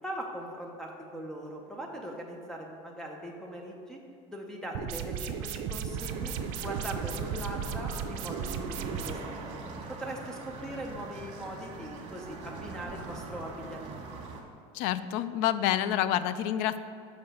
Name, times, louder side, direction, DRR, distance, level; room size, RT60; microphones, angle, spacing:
voice 1, 0.0-4.0 4.3-9.6 9.9-14.0, right 1 dB, 5° left, 0 dB, 0.7 m, -40 dB
sound 1, 4.7-9.1, right 7 dB, 65° right, 0.5 m, -35 dB
sound 2, 5.9-14.4, right 3 dB, 50° right, 1.4 m, -43 dB
voice 2, 14.7-16.8, left 11 dB, 65° left, 14 dB, 0.4 m, -28 dB
5.6 x 4.8 x 6.2 m, 2.5 s
supercardioid pair, 135°, 15 cm